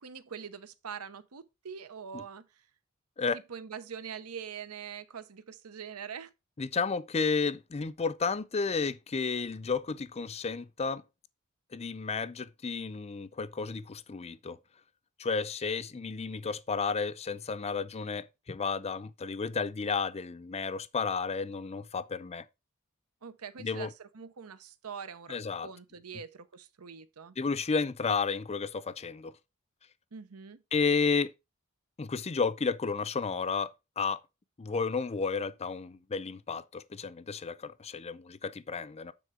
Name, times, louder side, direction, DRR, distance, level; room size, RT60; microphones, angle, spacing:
voice 1, 0.0-2.5 3.3-6.3 23.2-27.4 30.1-30.6, right 7 dB, 85° right, 0.8 m, -44 dB
voice 2, 6.6-11.0 11.7-14.6 15.2-22.4 23.6-23.9 25.3-25.7 27.4-29.3 30.7-31.3 32.0-33.7 34.0-34.2 34.6-39.1, left 5 dB, 30° left, 0.5 m, -32 dB
9.3 x 4.3 x 4.9 m
head